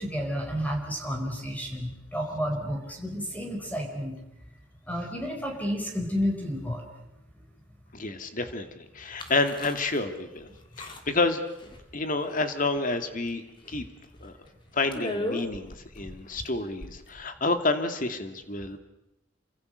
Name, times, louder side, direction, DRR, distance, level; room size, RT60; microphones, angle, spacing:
voice 1, 0.0-4.2 4.9-6.9, equal, 10° left, 2 dB, 4.6 m, -31 dB
voice 2, 7.9-10.5 10.8-11.4 11.9-13.4 13.7-13.8 14.2-14.3 14.7-18.8, left 3 dB, 45° left, 7 dB, 2.5 m, -29 dB
sound 1, 9.2-10.0 10.4-10.5 10.8-11.2 11.6-12.1 12.3-12.9 13.3-13.4 13.6-13.7 14.2-14.5 14.9-17.2, left 1 dB, 25° left, 3.0 m, -37 dB
29.0 x 25.5 x 6.6 m, 0.89 s
head